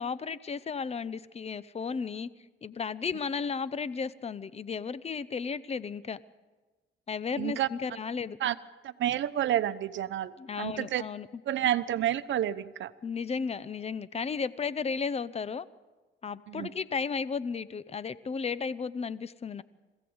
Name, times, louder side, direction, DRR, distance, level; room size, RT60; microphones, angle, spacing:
voice 1, 0.0-2.3 2.6-6.2 7.1-8.4 10.4-11.3 13.0-15.6 16.2-19.6, left 5 dB, 30° left, 17 dB, 0.8 m, -34 dB
voice 2, 7.4-7.7 8.4-8.5 9.0-11.0 11.5-12.9 16.5-16.7, right 12 dB, 70° right, 13 dB, 0.9 m, -29 dB
21.5 x 16.0 x 7.9 m, 1.2 s
cardioid pair, 90°, 20 cm